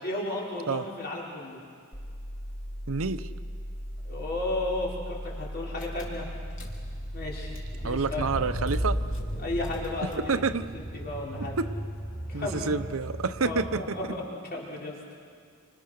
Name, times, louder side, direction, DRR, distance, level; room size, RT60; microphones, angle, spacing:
voice 1, 0.0-1.6 4.0-6.3 7.1-8.3 9.4-10.4 10.9-11.6 12.3-12.7 13.4-14.2 14.5-14.9, left 2 dB, 50° left, -4 dB, 5.2 m, -34 dB
sound 1, 1.9-9.9, equal, 85° left, 2.3 m, -38 dB
voice 2, 2.9-3.3 7.8-9.0 10.0-10.7 11.4-11.7 12.3-14.1, right 4 dB, 70° right, 11 dB, 0.8 m, -29 dB
Car / Engine, 5.8-14.1, right 1 dB, 65° left, 3.7 m, -36 dB
28.5 x 26.5 x 6.7 m, 2.1 s
head